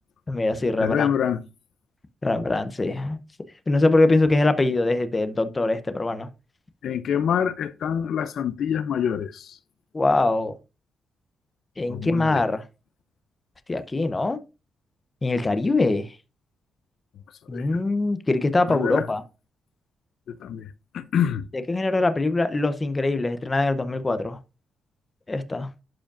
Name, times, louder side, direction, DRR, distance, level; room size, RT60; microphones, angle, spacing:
voice 1, 0.3-1.1 2.2-3.2 3.7-6.3 9.9-10.6 11.8-12.6 13.7-14.4 15.2-16.1 17.5-19.2 21.7-24.4 25.3-25.7, left 2 dB, 20° left, 0.7 m, -23 dB
voice 2, 0.8-1.4 6.8-9.6 11.9-12.4 17.5-17.8 18.7-19.1 20.3-21.5, left 8 dB, 65° left, 0.5 m, -26 dB
11.5 x 5.0 x 2.5 m
cardioid pair, 145°, 0 cm